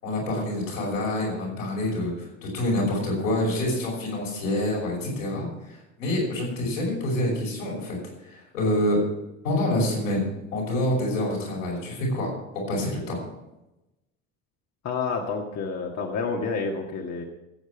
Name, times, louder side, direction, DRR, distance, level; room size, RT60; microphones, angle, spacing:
voice 1, 0.0-8.0 8.3-9.0 9.4-13.2, left 1 dB, 85° left, -3 dB, 5.7 m, -27 dB
voice 2, 14.8-17.2, left 4 dB, 45° left, 1 dB, 1.7 m, -29 dB
15.0 x 8.1 x 6.1 m, 0.96 s
hypercardioid pair, 65°, 38 cm